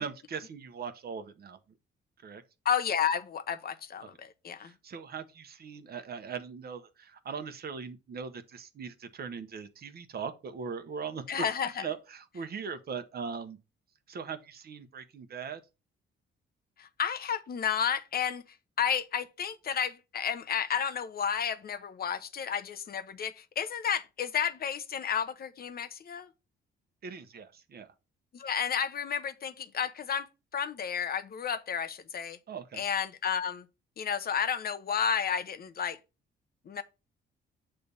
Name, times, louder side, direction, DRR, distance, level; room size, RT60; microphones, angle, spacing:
voice 1, 0.0-1.6 2.2-2.4 4.0-4.1 4.6-11.5 11.8-13.6 14.1-15.6 27.0-27.9 32.5-32.8, right 6 dB, 50° right, 1.0 m, -40 dB
voice 2, 2.6-4.7 11.3-11.9 16.8-18.4 18.8-26.3 28.3-30.3 30.5-32.4 32.8-33.7 34.0-36.0 36.7-36.8, left 7 dB, 50° left, 0.8 m, -31 dB
6.8 x 3.4 x 5.3 m
cardioid pair, 90°, 20 cm